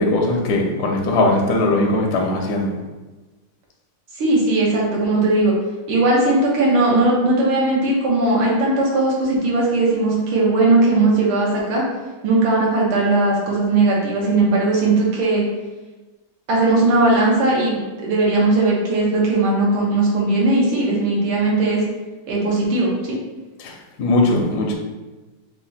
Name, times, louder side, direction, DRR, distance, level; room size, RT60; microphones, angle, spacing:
voice 1, 0.0-2.7 23.6-24.7, left 2 dB, 70° left, 0 dB, 1.0 m, -19 dB
voice 2, 4.2-5.5 5.9-11.8 12.2-15.4 16.5-21.8 22.3-22.9, right 2 dB, 85° right, -4 dB, 2.0 m, -18 dB
4.9 x 2.4 x 4.0 m, 1.2 s
omnidirectional pair, 2.3 m